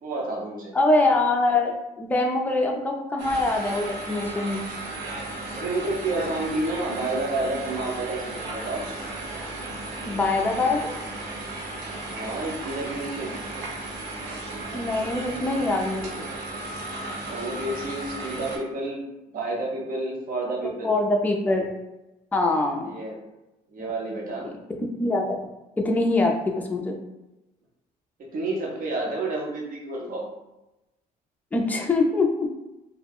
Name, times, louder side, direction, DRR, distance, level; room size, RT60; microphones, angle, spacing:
voice 1, 0.0-0.7 5.5-8.9 12.1-13.3 17.3-19.0 19.3-20.9 22.8-23.2 23.7-24.5 28.2-30.3, right 2 dB, 55° right, -2 dB, 0.8 m, -30 dB
voice 2, 0.7-4.7 10.1-10.9 14.7-16.1 20.8-21.8 22.3-22.9 23.8-23.9 24.4-24.5 24.8-25.3 25.8-27.0 31.5-32.5, left 2 dB, 10° left, 1 dB, 0.4 m, -24 dB
sound 1, 3.2-18.6, right 2 dB, 85° right, 0.7 m, -35 dB
2.3 x 2.1 x 3.4 m, 0.97 s
cardioid pair, 110°, 17 cm